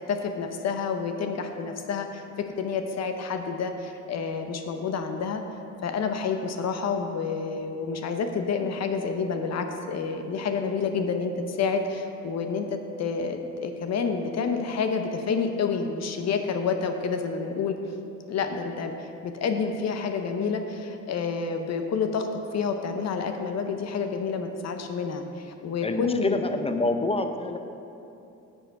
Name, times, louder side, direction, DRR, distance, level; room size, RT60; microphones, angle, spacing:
voice 1, 0.1-2.3 2.6-5.4 5.8-17.8 18.3-22.3 22.5-26.4, left 5 dB, 60° left, 6 dB, 0.8 m, -29 dB
voice 2, 25.8-27.6, left 2 dB, 20° left, 7 dB, 0.6 m, -27 dB
9.8 x 6.4 x 4.7 m, 2.8 s
cardioid pair, 90°, 30 cm